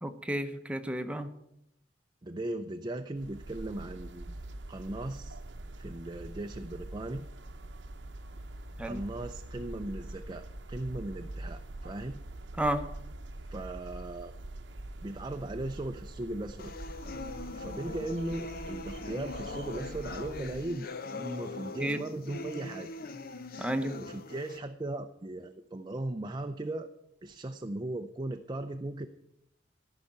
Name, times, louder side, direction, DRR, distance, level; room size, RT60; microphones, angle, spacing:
voice 1, 0.0-1.3 8.8-9.0 12.6-12.8 21.8-22.0 23.6-24.0, right 1 dB, 5° right, 7 dB, 0.9 m, -31 dB
voice 2, 2.2-4.4 4.7-5.4 5.8-7.3 8.8-12.2 13.5-14.4 15.0-16.7 17.5-22.9 24.0-26.9 27.2-29.1, right 1 dB, 25° right, 6 dB, 0.5 m, -38 dB
sound 1, 3.2-20.7, right 1 dB, 75° right, 0.9 m, -44 dB
sound 2, 16.6-24.6, left 2 dB, 55° left, 0.7 m, -41 dB
14.0 x 5.8 x 8.8 m, 0.80 s
head